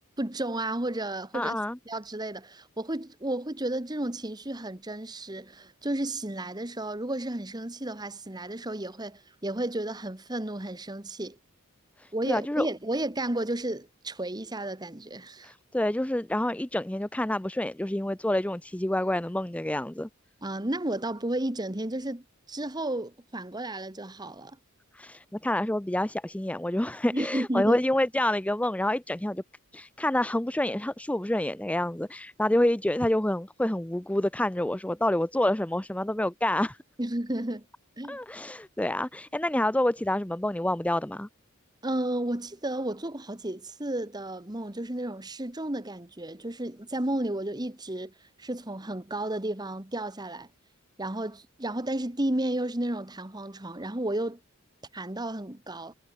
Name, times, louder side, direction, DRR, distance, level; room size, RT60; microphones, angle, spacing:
voice 1, 0.2-1.6 1.9-11.4 12.1-15.5 20.4-22.2 22.5-24.5 27.1-27.8 37.0-37.6 38.0-38.2 41.8-48.1 48.4-50.5 51.0-54.4 54.9-55.9, right 1 dB, 20° right, 1.5 m, -32 dB
voice 2, 1.3-1.8 12.0-12.7 15.4-20.1 24.9-29.4 29.7-36.8 38.1-41.3, left 1 dB, 5° left, 0.5 m, -28 dB
head